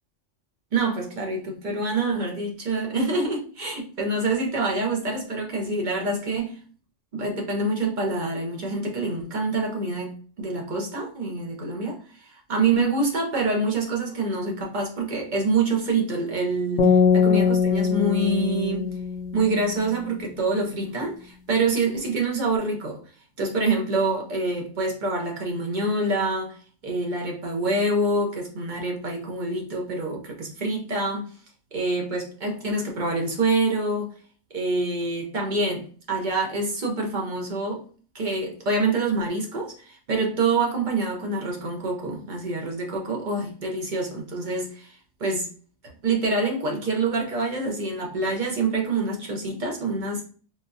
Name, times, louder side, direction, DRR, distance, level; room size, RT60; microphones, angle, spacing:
voice 1, 0.7-6.6 7.1-16.9 17.2-18.9 19.3-23.0 23.4-26.6 26.8-31.3 31.7-34.1 34.5-37.8 38.1-45.5 46.0-50.2, right 3 dB, 45° right, 0.8 m, -26 dB
sound 1, 16.8-20.0, left 5 dB, 75° left, 0.9 m, -22 dB
3.8 x 2.3 x 2.6 m
omnidirectional pair, 1.2 m